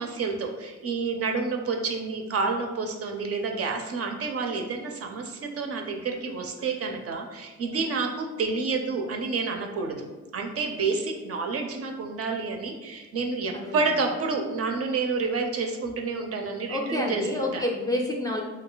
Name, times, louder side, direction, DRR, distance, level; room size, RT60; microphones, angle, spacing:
voice 1, 0.0-10.1 10.3-17.6, right 4 dB, 50° right, 3 dB, 0.5 m, -29 dB
voice 2, 16.7-18.4, left 1 dB, 10° left, 0 dB, 0.4 m, -28 dB
2.6 x 2.3 x 3.8 m, 1.2 s
cardioid pair, 90°, 30 cm